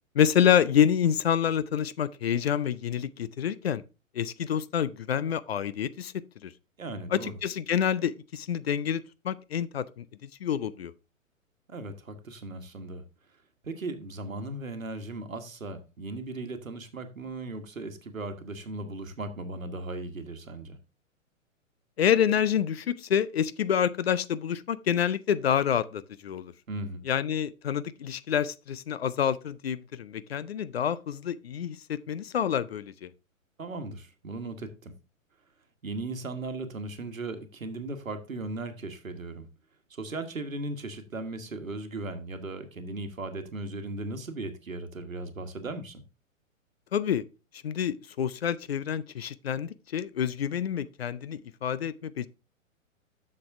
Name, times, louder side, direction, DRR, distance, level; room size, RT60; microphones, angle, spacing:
voice 1, 0.1-3.8 4.1-6.1 6.4-6.5 7.1-10.0 10.4-10.9 22.0-26.5 27.1-33.1 46.9-47.2 47.6-52.3, left 9 dB, 50° left, 0.5 m, -27 dB
voice 2, 6.8-7.4 11.7-13.0 13.6-20.8 26.7-27.0 33.6-34.9 35.8-39.5 39.9-46.0, right 2 dB, 75° right, 1.4 m, -37 dB
7.5 x 6.6 x 3.5 m
figure-of-eight pair, 115°, 41 cm